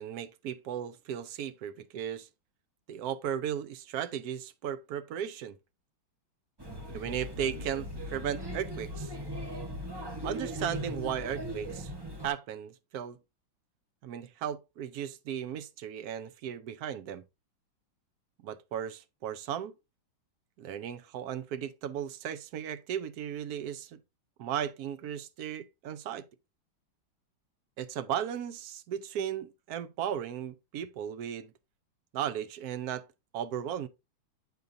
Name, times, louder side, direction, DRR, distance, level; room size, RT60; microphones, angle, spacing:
voice 1, 0.0-2.3 2.9-5.6 6.9-9.2 10.2-11.9 12.2-13.2 14.0-17.2 18.4-19.7 20.6-24.0 24.4-26.3 27.8-31.5 32.1-33.0 33.3-33.9, right 9 dB, 70° right, 0.9 m, -36 dB
Male speech man speaking / Child speech kid speaking / Chatter, 6.6-12.3, equal, 20° right, 0.6 m, -38 dB
8.4 x 6.5 x 2.6 m
omnidirectional pair, 2.2 m